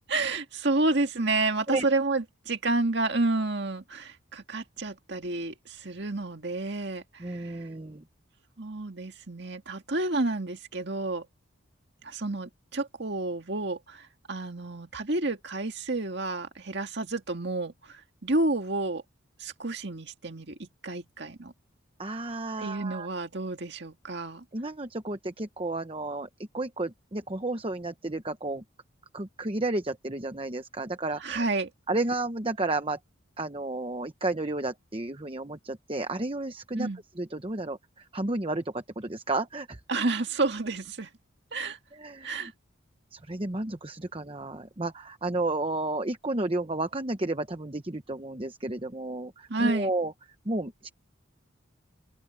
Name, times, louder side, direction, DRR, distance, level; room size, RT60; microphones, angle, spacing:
voice 1, 0.1-7.6 8.6-11.3 12.0-19.0 19.4-21.5 22.6-24.4 31.2-31.7 36.8-37.0 39.9-41.1 41.5-41.8 42.2-42.5 49.5-49.9, right 2 dB, 55° right, 2.0 m, -30 dB
voice 2, 7.2-8.0 22.0-23.1 24.5-26.3 26.5-28.6 29.1-31.4 31.9-33.0 33.4-36.9 37.2-39.8 41.9-42.5 43.1-50.1 50.4-50.9, right 2 dB, 25° right, 1.0 m, -32 dB
open air
head